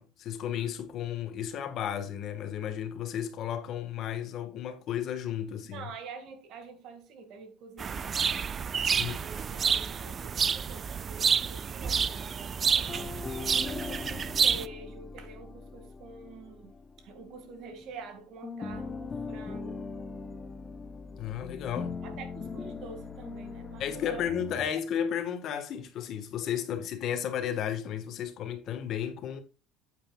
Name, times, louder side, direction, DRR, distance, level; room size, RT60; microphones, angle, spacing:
voice 1, 0.0-5.9 9.0-9.2 21.1-22.0 23.8-29.4, left 9 dB, 50° left, 1.4 m, -33 dB
voice 2, 5.7-8.5 9.0-19.8 22.0-24.3 24.6-24.7, right 5 dB, 60° right, 2.0 m, -47 dB
sound 1, 7.8-14.7, right 6 dB, 30° right, 0.4 m, -29 dB
sound 2, 12.9-18.1 18.4-24.7, left 4 dB, 25° left, 0.7 m, -41 dB
9.0 x 8.4 x 2.3 m
cardioid pair, 120°, 0 cm